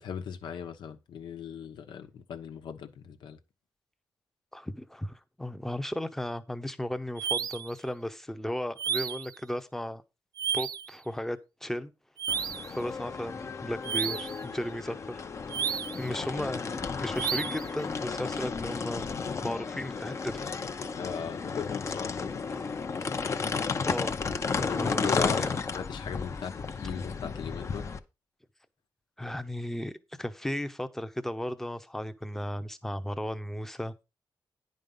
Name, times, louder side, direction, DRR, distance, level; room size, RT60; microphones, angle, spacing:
voice 1, 0.0-3.4 21.0-22.6 24.5-27.9, left 7 dB, 90° left, 1.1 m, -38 dB
voice 2, 4.5-10.0 10.5-11.9 12.7-15.2 15.6-19.1 19.4-20.5 22.5-22.7 23.0-23.1 23.9-24.2 24.6-25.6 29.2-29.9 30.2-33.9, left 1 dB, 5° left, 0.8 m, -35 dB
sound 1, 7.2-7.7 8.8-9.3 10.4-10.9 12.2-12.7 13.8-14.4 15.5-16.1 17.1-17.7, right 8 dB, 55° right, 0.4 m, -32 dB
sound 2, 12.3-28.0, left 5 dB, 40° left, 0.8 m, -33 dB
10.5 x 5.1 x 5.5 m
wide cardioid pair, 155°, 8 cm